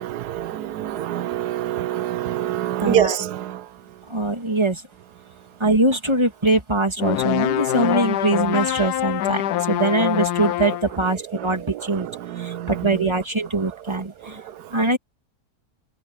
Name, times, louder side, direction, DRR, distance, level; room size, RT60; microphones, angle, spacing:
voice 1, 0.0-3.7 11.0-13.1 13.9-14.8, right 11 dB, 90° right, 1.2 m, -27 dB
voice 2, 2.8-3.2 4.1-4.8 5.6-12.1 12.4-14.4 14.7-15.0, right 2 dB, 15° right, 2.3 m, -22 dB
sound 1, 7.0-11.0, left 13 dB, 85° left, 1.2 m, -24 dB
omnidirectional pair, 1.7 m